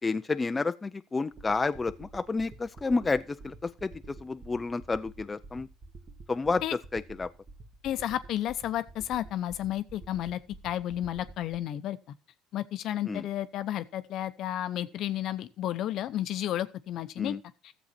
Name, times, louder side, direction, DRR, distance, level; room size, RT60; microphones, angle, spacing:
voice 1, 0.0-5.7 6.3-6.6 6.9-7.3 13.1-13.3 17.2-17.4, left 3 dB, 20° left, 0.4 m, -30 dB
sound 1, 1.3-11.6, right 3 dB, 40° right, 1.6 m, -50 dB
voice 2, 7.8-12.0 12.5-17.3, left 12 dB, 60° left, 0.7 m, -32 dB
13.0 x 7.2 x 4.2 m
supercardioid pair, 80°, 0 cm